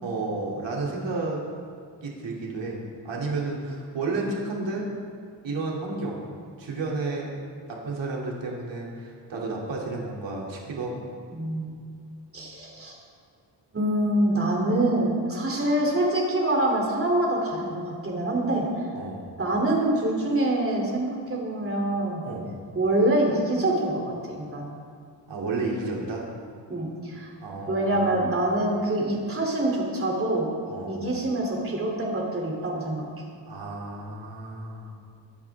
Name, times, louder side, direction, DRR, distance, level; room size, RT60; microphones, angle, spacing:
voice 1, 0.0-1.4 2.0-2.8 3.0-4.9 5.4-6.2 6.6-7.3 7.7-11.0 18.9-19.3 22.2-22.5 25.3-26.3 27.4-28.3 30.7-30.9 33.5-34.9, right 3 dB, 75° right, -3 dB, 2.9 m, -31 dB
voice 2, 11.3-11.8 12.3-13.0 13.7-18.6 19.4-22.2 22.7-24.7 26.7-27.3 27.7-30.5 30.8-33.2, right 1 dB, 30° right, -1 dB, 3.1 m, -25 dB
23.5 x 10.5 x 3.6 m, 2.1 s
wide cardioid pair, 145°, 44 cm